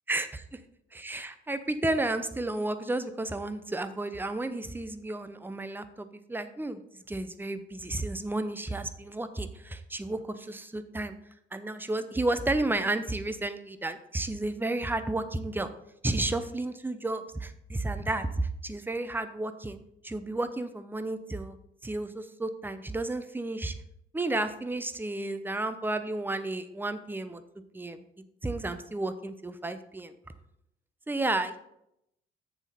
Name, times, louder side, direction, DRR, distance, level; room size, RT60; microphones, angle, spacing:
voice 1, 0.1-0.4 0.9-11.2 11.5-15.7 16.0-19.8 20.0-21.6 21.8-23.8 24.1-27.4 27.7-28.0 28.4-30.1 31.1-31.6, right 2 dB, 5° right, 10 dB, 0.7 m, -32 dB
7.2 x 7.1 x 4.1 m, 0.80 s
figure-of-eight pair, 45°, 31 cm